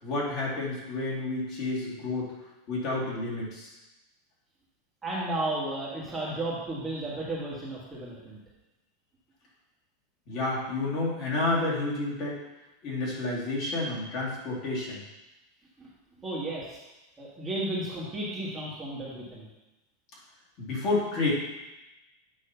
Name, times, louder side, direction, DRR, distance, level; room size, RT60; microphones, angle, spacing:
voice 1, 0.0-2.3 2.7-3.7 10.3-12.4 12.8-15.0 20.6-21.3, left 2 dB, 40° left, -5 dB, 2.4 m, -30 dB
voice 2, 5.0-8.4 15.8-15.9 16.2-16.8 17.2-19.4, right 1 dB, 15° right, -6 dB, 1.4 m, -33 dB
8.7 x 3.1 x 5.6 m, 1.0 s
supercardioid pair, 155°, 0 cm